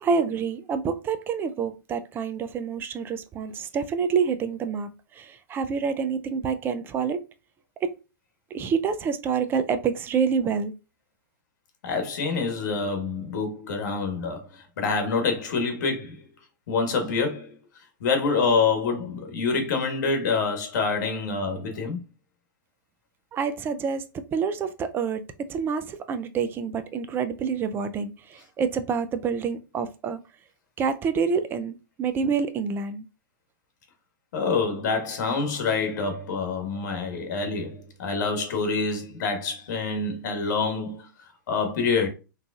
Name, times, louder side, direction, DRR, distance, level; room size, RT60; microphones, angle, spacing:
voice 1, 0.0-7.2 7.8-7.9 8.5-10.7 23.3-30.2 30.8-33.1, right 6 dB, 20° right, 0.4 m, -27 dB
voice 2, 11.8-14.5 14.8-16.2 16.7-17.5 18.0-22.0 34.3-41.1 41.5-42.1, left 4 dB, 55° left, 1.3 m, -26 dB
3.7 x 3.1 x 2.3 m
hypercardioid pair, 120°, 11 cm